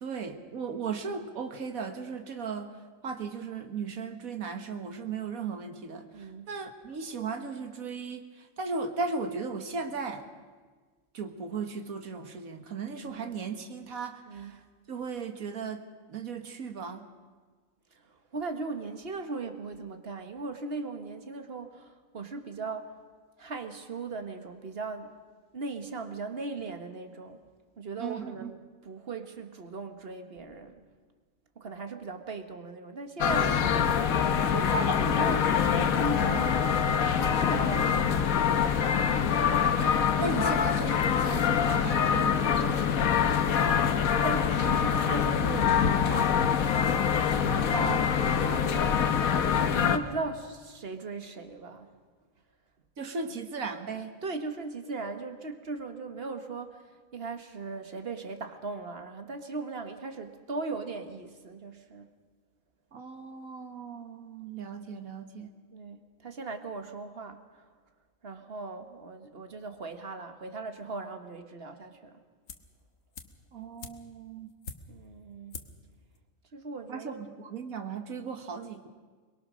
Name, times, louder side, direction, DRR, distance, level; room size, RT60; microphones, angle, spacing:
voice 1, 0.0-2.8 3.0-10.3 11.1-14.6 14.9-15.8 16.1-17.1 28.0-28.5 40.2-43.4 47.7-48.1 53.0-54.1 62.9-65.5 73.5-74.5 76.9-78.9, right 5 dB, 85° right, 6 dB, 1.9 m, -36 dB
voice 2, 6.1-6.5 12.9-13.4 14.3-14.6 18.1-22.9 23.4-25.2 25.5-27.4 27.8-30.8 31.6-36.7 37.1-38.7 44.2-46.5 47.8-48.0 48.4-51.9 54.2-62.1 65.7-67.4 68.2-72.2 74.9-75.6 76.5-77.1, right 3 dB, 45° right, 8 dB, 1.6 m, -38 dB
sound 1, 33.2-50.0, left 7 dB, 90° left, 1.5 m, -25 dB
sound 2, 72.5-72.8 73.1-75.1 75.5-75.9 76.2-76.3, left 4 dB, 65° left, 1.6 m, -45 dB
23.0 x 22.0 x 6.3 m, 1.5 s
omnidirectional pair, 1.4 m